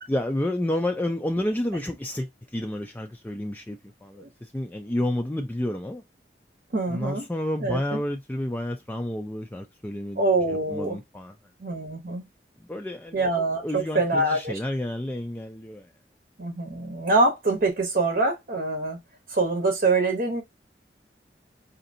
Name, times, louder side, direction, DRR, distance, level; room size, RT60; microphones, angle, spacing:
voice 1, 0.1-6.0 6.9-11.3 12.6-13.3 13.6-15.9, left 1 dB, 10° left, 0.3 m, -30 dB
voice 2, 6.7-7.2 7.6-8.0 10.2-11.0 11.6-12.2 13.1-14.6 16.4-19.0 19.3-20.4, right 3 dB, 55° right, 0.8 m, -24 dB
5.1 x 2.6 x 2.6 m
head